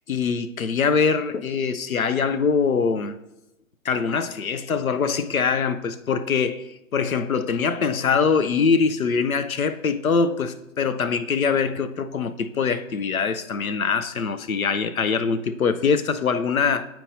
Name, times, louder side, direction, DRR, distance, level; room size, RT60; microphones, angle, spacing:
voice 1, 0.1-3.2 3.8-6.6 6.9-16.9, left 5 dB, 90° left, 0.6 m, -23 dB
9.5 x 4.5 x 2.7 m
figure-of-eight pair, 125°, 41 cm